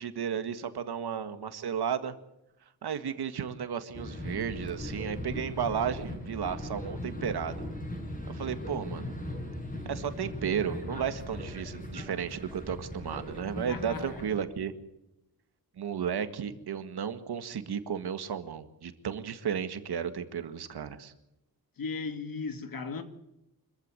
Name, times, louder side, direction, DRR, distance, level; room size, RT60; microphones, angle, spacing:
voice 1, 0.0-2.2 2.8-7.6 8.3-9.1 9.9-14.7 15.8-21.1, right 8 dB, 90° right, 1.9 m, -33 dB
sound 1, 3.9-14.4, left 1 dB, 20° left, 7.0 m, -39 dB
voice 2, 13.7-14.0 21.8-23.0, left 4 dB, 60° left, 2.3 m, -36 dB
25.0 x 15.0 x 7.7 m
wide cardioid pair, 150°, 38 cm